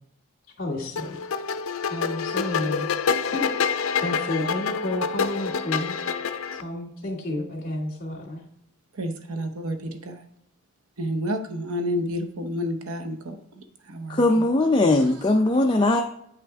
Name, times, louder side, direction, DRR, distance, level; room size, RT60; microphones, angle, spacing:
voice 1, 0.6-1.2 1.9-2.9 3.3-6.0 6.5-8.4, left 2 dB, 45° left, -5 dB, 2.2 m, -31 dB
sound 1, 1.0-6.6, left 6 dB, 75° left, 0.5 m, -27 dB
voice 2, 8.9-10.2 11.0-14.4, equal, 85° right, 6 dB, 0.9 m, -30 dB
voice 3, 14.1-16.0, left 2 dB, 20° left, 3 dB, 0.4 m, -20 dB
9.3 x 5.8 x 3.5 m, 0.73 s
head